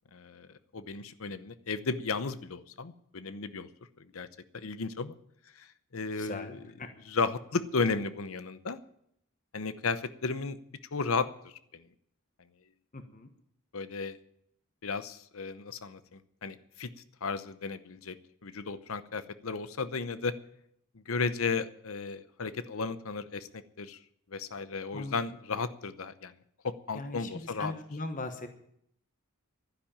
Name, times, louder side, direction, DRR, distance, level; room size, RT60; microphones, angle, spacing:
voice 1, 0.1-0.5 0.7-3.7 4.1-4.3 4.5-5.2 5.6-5.7 5.9-6.6 7.0-8.8 9.5-10.6 10.9-11.8 13.7-14.2 14.8-16.9 17.2-18.2 18.4-20.3 20.9-24.0 24.3-26.3 26.6-27.7, left 4 dB, 75° left, 13 dB, 0.8 m, -34 dB
voice 2, 6.2-6.9 12.9-13.3 24.9-25.2 26.9-28.5, left 2 dB, 40° left, 7 dB, 1.2 m, -39 dB
11.5 x 10.5 x 8.8 m, 0.73 s
head